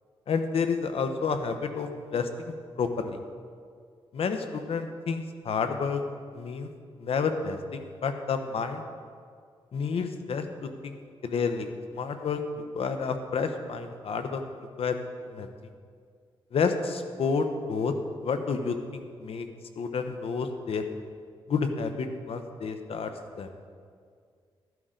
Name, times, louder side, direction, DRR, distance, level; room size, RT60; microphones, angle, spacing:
voice 1, 0.3-2.3 2.8-3.2 4.1-6.0 6.3-6.7 7.0-8.8 9.7-11.0 11.2-12.4 12.7-14.4 14.8-15.0 15.3-15.5 16.5-17.9 18.2-19.5 19.8-20.8 21.5-23.1 23.4-23.5, left 5 dB, 75° left, 7 dB, 0.9 m, -30 dB
13.0 x 10.5 x 3.9 m, 2.1 s
cardioid pair, 95°, 10 cm